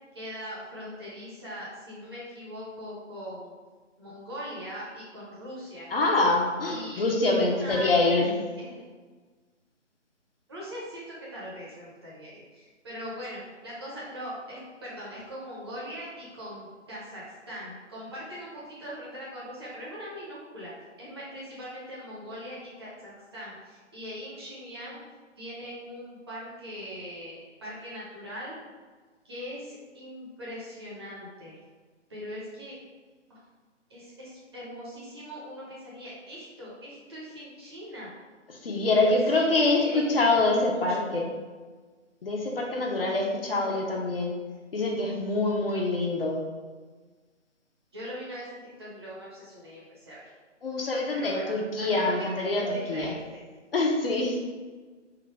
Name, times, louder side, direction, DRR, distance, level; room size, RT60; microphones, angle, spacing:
voice 1, 0.1-3.5 4.0-5.9 6.6-7.2 7.5-8.2 8.6-8.8 10.5-20.7 21.0-25.0 25.4-28.6 29.2-31.6 32.1-32.8 33.3-33.4 33.9-38.1 38.9-39.5 39.8-41.1 47.9-50.2 51.1-53.4, equal, 20° right, -7 dB, 0.8 m, -41 dB
voice 2, 5.9-8.3 38.6-41.3 42.2-44.4 44.7-46.4 50.6-53.1 53.7-54.4, left 2 dB, 50° left, 0 dB, 0.8 m, -25 dB
3.8 x 2.7 x 4.4 m, 1.4 s
figure-of-eight pair, 155°, 37 cm